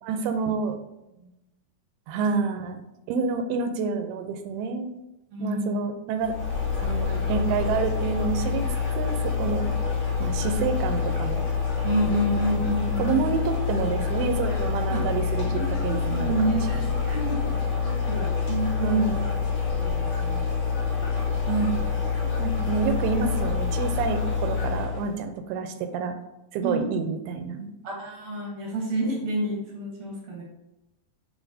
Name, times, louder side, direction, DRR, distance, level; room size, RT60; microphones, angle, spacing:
voice 1, 0.0-0.8 2.1-2.8 3.1-4.9 5.4-6.4 6.8-8.7 9.0-9.7 10.2-11.5 13.0-16.9 18.8-19.3 21.5-21.9 22.2-26.2 26.5-27.7, right 5 dB, 85° right, 7 dB, 2.6 m, -28 dB
voice 2, 5.3-5.7 11.8-13.3 14.9-15.0 15.4-17.5 17.8-19.2 19.7-20.4 26.6-26.9 27.8-30.4, right 1 dB, 60° right, -2 dB, 1.8 m, -29 dB
sound 1, 6.2-25.1, left 5 dB, 55° left, 2.2 m, -27 dB
9.1 x 4.0 x 2.7 m, 0.95 s
omnidirectional pair, 4.4 m